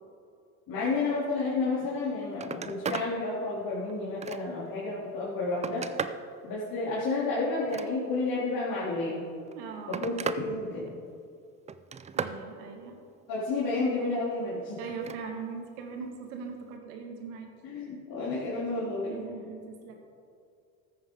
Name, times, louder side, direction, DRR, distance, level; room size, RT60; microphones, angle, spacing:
voice 1, 0.7-5.8 6.4-9.2 10.0-10.9 13.3-14.8 17.6-19.1, left 3 dB, 50° left, -7 dB, 3.2 m, -31 dB
Telephone, 1.9-2.0 2.3-3.1 3.6-4.7 5.2-6.3 7.5-8.3 9.3-10.5 10.8-11.3 11.7-12.4 14.9-15.2 16.6-16.7, right 6 dB, 15° right, 0.4 m, -36 dB
voice 2, 9.6-10.1 12.1-13.0 14.8-17.5 19.1-19.9, right 5 dB, 70° right, 3 dB, 2.0 m, -40 dB
14.0 x 9.6 x 3.8 m, 2.4 s
hypercardioid pair, 80°, 44 cm